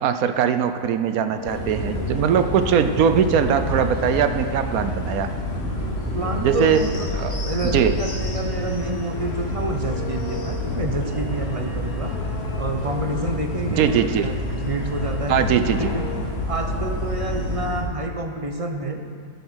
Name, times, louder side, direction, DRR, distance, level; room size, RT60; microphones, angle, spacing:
voice 1, 0.0-5.3 6.4-6.8 7.1-7.4 7.6-8.0 13.8-14.3 15.3-15.9, right 8 dB, 75° right, 10 dB, 1.1 m, -21 dB
sound 1, 1.3-16.5, left 4 dB, 85° left, 2.0 m, -34 dB
sound 2, 1.5-17.8, left 1 dB, 45° left, 2.1 m, -29 dB
voice 2, 6.1-12.1 12.6-14.3 14.6-16.0 16.5-19.0, right 2 dB, 30° right, 4 dB, 0.7 m, -28 dB
14.0 x 8.3 x 6.3 m, 2.1 s
omnidirectional pair, 1.6 m